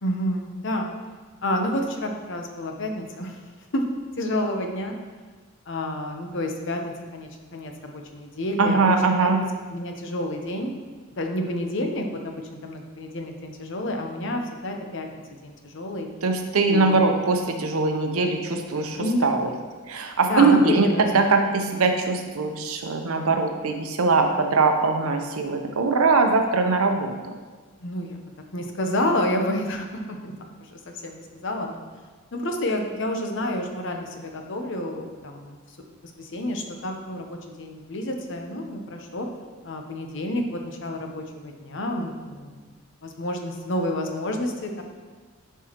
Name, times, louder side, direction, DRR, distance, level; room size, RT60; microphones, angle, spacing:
voice 1, 0.0-0.9 1.4-3.4 3.7-3.8 4.2-4.9 5.7-8.8 9.2-9.3 9.7-10.7 11.2-15.1 15.4-16.1 16.7-17.0 18.9-19.4 20.2-21.3 27.8-28.2 28.5-30.3 30.7-31.8 32.3-35.6 35.9-39.3 39.6-42.6 43.0-44.8, left 1 dB, 60° left, 3 dB, 0.8 m, -29 dB
voice 2, 8.6-9.4 16.2-19.5 19.9-27.1, right 3 dB, 85° right, 5 dB, 0.8 m, -21 dB
11.0 x 4.6 x 3.0 m, 1.4 s
head